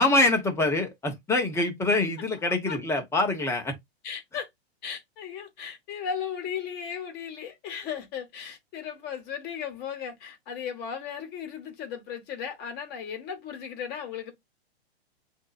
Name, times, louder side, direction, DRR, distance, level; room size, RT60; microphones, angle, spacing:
voice 1, 0.0-3.7, left 2 dB, 10° left, 1.1 m, -24 dB
voice 2, 2.5-2.8 4.0-4.5 4.8-14.3, left 7 dB, 30° left, 1.3 m, -36 dB
8.1 x 2.7 x 2.4 m
hypercardioid pair, 130°, 32 cm